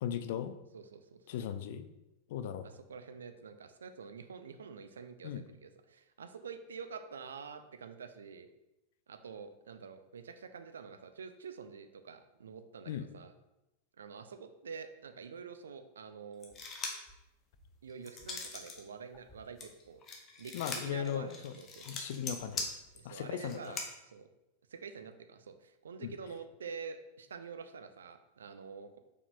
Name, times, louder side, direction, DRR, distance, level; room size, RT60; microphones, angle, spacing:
voice 1, 0.0-0.5 1.3-1.9 2.3-2.7 5.2-5.4 12.9-13.0 20.5-21.5 21.9-22.7 23.0-23.6 26.0-26.1, left 9 dB, 55° left, 11 dB, 0.3 m, -37 dB
voice 2, 0.7-1.2 2.6-8.5 9.1-13.3 14.0-16.5 17.8-20.0 20.4-22.0 22.9-24.3 24.7-29.0, right 5 dB, 70° right, 8 dB, 0.4 m, -47 dB
sound 1, 16.4-17.1 17.6-18.8 19.1-23.9, left 4 dB, 30° left, 0.8 m, -41 dB
4.9 x 4.7 x 2.2 m, 0.93 s
figure-of-eight pair, 90°, 0 cm